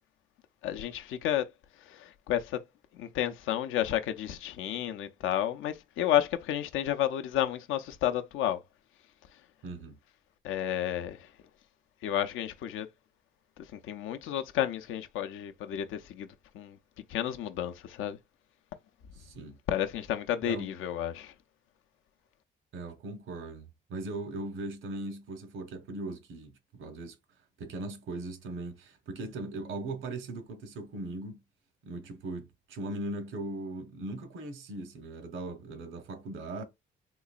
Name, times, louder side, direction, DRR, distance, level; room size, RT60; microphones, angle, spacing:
voice 1, 0.6-1.5 1.8-2.6 2.9-8.6 10.4-11.3 12.0-12.9 13.6-16.3 16.5-16.8 17.1-18.2 19.7-21.3, left 11 dB, 85° left, 0.5 m, -31 dB
voice 2, 9.6-10.0 19.2-19.6 20.4-20.7 22.7-27.2 27.6-31.4 31.8-36.6, right 2 dB, 80° right, 1.0 m, -39 dB
3.8 x 2.9 x 2.4 m
cardioid pair, 90°, 20 cm